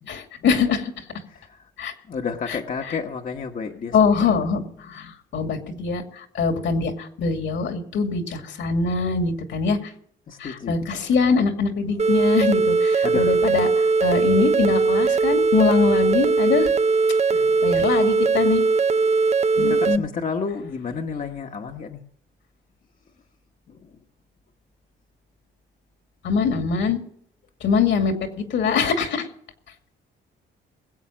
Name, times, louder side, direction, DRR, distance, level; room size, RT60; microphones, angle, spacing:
voice 1, 0.1-0.9 1.8-1.9 3.9-9.8 10.4-16.7 17.6-18.6 19.6-20.0 26.2-27.0 27.6-29.3, left 5 dB, 70° left, 5 dB, 2.4 m, -23 dB
voice 2, 1.0-1.6 2.1-4.4 4.6-5.1 10.3-11.1 13.0-13.4 17.3-17.6 19.6-22.0 23.7-23.9, left 5 dB, 45° left, 2 dB, 1.2 m, -32 dB
sound 1, 12.0-20.0, right 4 dB, 35° right, 0.5 m, -20 dB
20.5 x 8.2 x 6.3 m, 0.67 s
cardioid pair, 90°, 20 cm